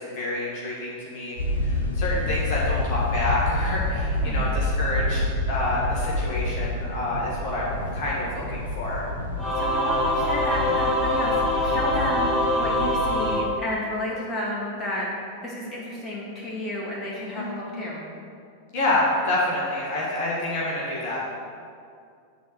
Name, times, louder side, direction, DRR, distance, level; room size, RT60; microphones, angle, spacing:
voice 1, 0.0-1.3 1.6-9.1 17.3-17.5 18.7-21.2, left 1 dB, 45° left, -5 dB, 1.8 m, -28 dB
sound 1, 1.3-13.3, left 2 dB, 75° left, 1.3 m, -28 dB
voice 2, 4.1-4.5 9.3-15.1 15.4-18.0, equal, 20° left, -5 dB, 2.2 m, -32 dB
Singing / Musical instrument, 9.4-14.2, left 1 dB, ahead, 2.3 m, -24 dB
9.2 x 4.2 x 6.8 m, 2.3 s
figure-of-eight pair, 90°, 0 cm